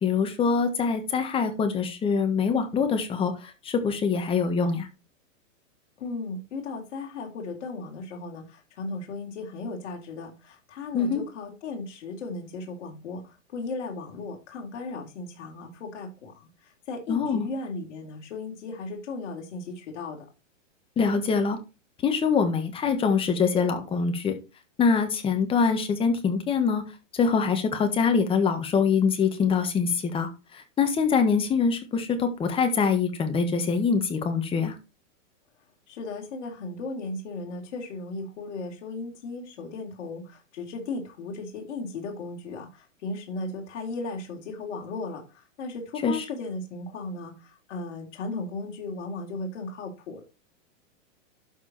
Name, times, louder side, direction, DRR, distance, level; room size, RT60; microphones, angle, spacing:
voice 1, 0.0-4.9 10.9-11.2 17.1-17.5 21.0-21.6 22.0-24.3 24.8-26.8 27.1-34.7 46.0-46.2, left 5 dB, 15° left, 7 dB, 1.5 m, -24 dB
voice 2, 6.0-20.3 35.9-50.2, left 3 dB, 60° left, 1 dB, 3.8 m, -36 dB
12.0 x 4.9 x 4.3 m, 0.29 s
supercardioid pair, 160°, 39 cm